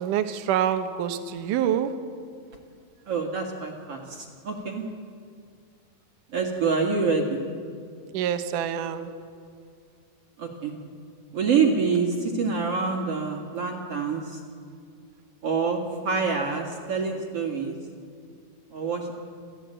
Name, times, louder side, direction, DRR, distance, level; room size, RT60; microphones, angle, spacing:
voice 1, 0.0-1.9 8.1-9.1, right 9 dB, 70° right, 9 dB, 2.4 m, -26 dB
voice 2, 3.1-4.8 6.3-7.4 10.4-10.8 11.3-14.4 15.4-17.7 18.7-19.1, right 5 dB, 45° right, 1 dB, 2.5 m, -26 dB
28.5 x 14.0 x 8.9 m, 2.2 s
omnidirectional pair, 4.3 m